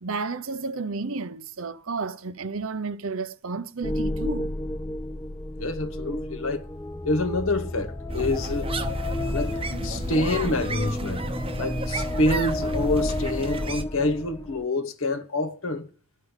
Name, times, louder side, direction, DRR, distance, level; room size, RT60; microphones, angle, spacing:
voice 1, 0.0-4.5 9.7-10.1, right 4 dB, 65° right, 0.8 m, -32 dB
sound 1, 3.8-14.6, left 1 dB, 10° left, 0.5 m, -32 dB
voice 2, 5.6-6.6 7.0-8.7 9.3-11.3 11.6-15.9, left 2 dB, 65° left, 1.1 m, -27 dB
sound 2, 8.1-13.8, right 2 dB, 25° right, 0.9 m, -32 dB
13.0 x 5.4 x 8.2 m
head